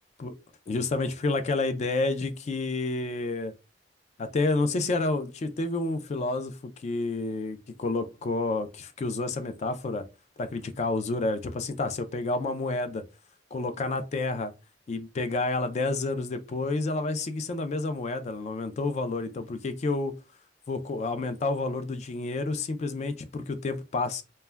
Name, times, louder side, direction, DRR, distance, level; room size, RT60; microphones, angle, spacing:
voice 1, 0.7-3.5 4.2-10.0 10.4-13.0 13.5-14.5 14.9-20.1 20.7-24.2, left 3 dB, 40° left, 0.3 m, -29 dB
2.2 x 2.1 x 3.3 m
head